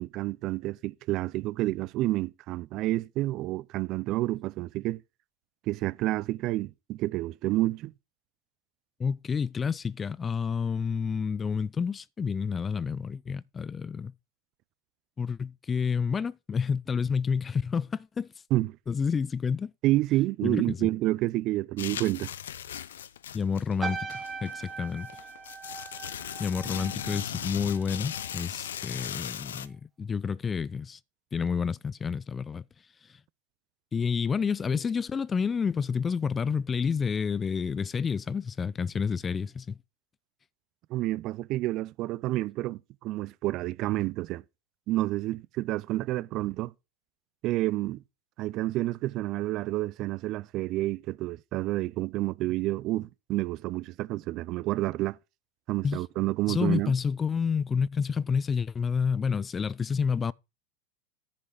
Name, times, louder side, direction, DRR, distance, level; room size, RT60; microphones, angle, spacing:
voice 1, 0.0-5.0 5.7-7.9 18.5-18.8 19.8-22.3 40.9-44.4 44.9-46.7 47.4-48.0 48.4-55.2 55.7-56.9, right 17 dB, 50° right, 0.5 m, -29 dB
voice 2, 9.0-14.1 15.2-18.3 18.9-19.7 20.4-20.9 23.3-25.1 26.4-31.0 31.3-32.6 33.9-39.8 55.8-56.0 56.5-60.3, left 6 dB, 25° left, 0.4 m, -29 dB
sound 1, 21.8-29.7, left 10 dB, 80° left, 0.6 m, -38 dB
sound 2, 23.8-28.4 28.7-29.1, right 5 dB, 20° right, 2.4 m, -40 dB
10.0 x 5.3 x 4.9 m
hypercardioid pair, 95°, 0 cm